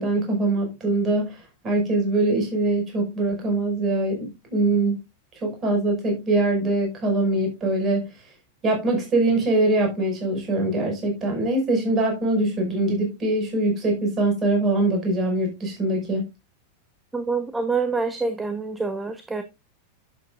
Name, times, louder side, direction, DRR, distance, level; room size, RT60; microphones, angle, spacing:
voice 1, 0.0-5.0 5.4-8.1 8.6-16.3, right 2 dB, 25° right, 5.7 m, -23 dB
voice 2, 17.1-19.4, right 4 dB, 10° right, 1.0 m, -26 dB
11.5 x 8.3 x 2.5 m
figure-of-eight pair, 90°, 0 cm